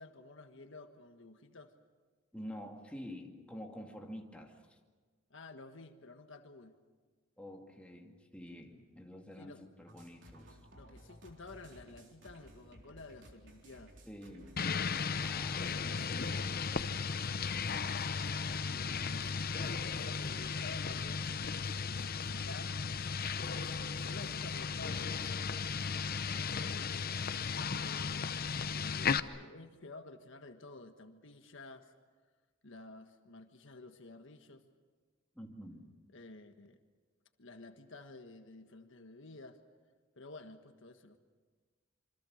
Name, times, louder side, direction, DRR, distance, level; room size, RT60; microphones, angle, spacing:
voice 1, 0.0-1.7 5.3-6.7 9.4-9.6 10.7-13.9 18.6-19.4 19.9-21.4 21.8-22.8 23.4-23.7 24.0-25.5 26.2-26.7 27.8-31.9 32.6-34.6 36.1-36.8 37.4-39.6 40.2-41.2, left 2 dB, 65° left, 6 dB, 1.5 m, -52 dB
voice 2, 2.3-4.8 7.4-10.5 14.1-14.6 15.2-17.1 35.3-35.9, equal, 5° left, 1 dB, 2.4 m, -48 dB
sound 1, 9.9-25.5, right 1 dB, 65° right, 3.9 m, -57 dB
sound 2, 14.6-29.2, left 5 dB, 50° left, 0.8 m, -35 dB
27.5 x 25.0 x 6.6 m, 1.4 s
head